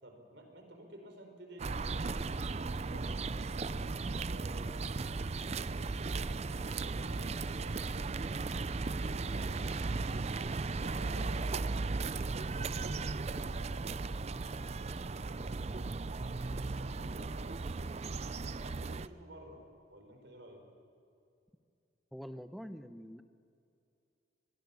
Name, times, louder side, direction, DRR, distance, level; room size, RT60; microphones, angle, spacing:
voice 1, 0.0-3.2 3.5-15.9 16.5-20.7, right 1 dB, 65° right, 4 dB, 4.5 m, -53 dB
sound 1, 1.6-19.1, right 3 dB, 35° right, 0.5 m, -36 dB
voice 2, 22.1-23.2, equal, ahead, 10 dB, 0.8 m, -45 dB
24.0 x 21.5 x 7.0 m, 2.5 s
head